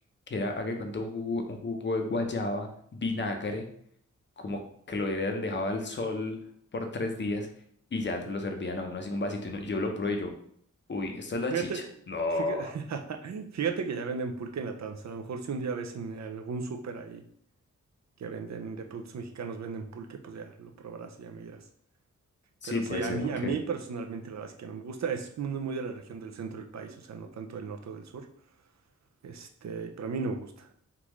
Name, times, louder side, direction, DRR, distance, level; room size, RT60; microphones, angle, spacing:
voice 1, 0.3-3.7 4.4-4.6 4.9-6.4 6.7-7.5 7.9-10.3 10.9-12.7 22.6-23.5, left 2 dB, 35° left, 4 dB, 0.7 m, -32 dB
voice 2, 11.5-11.8 12.3-17.2 18.2-21.6 22.6-28.3 29.2-30.8, right 5 dB, 60° right, 5 dB, 0.5 m, -35 dB
3.6 x 2.4 x 3.0 m, 0.64 s
cardioid pair, 70°, 31 cm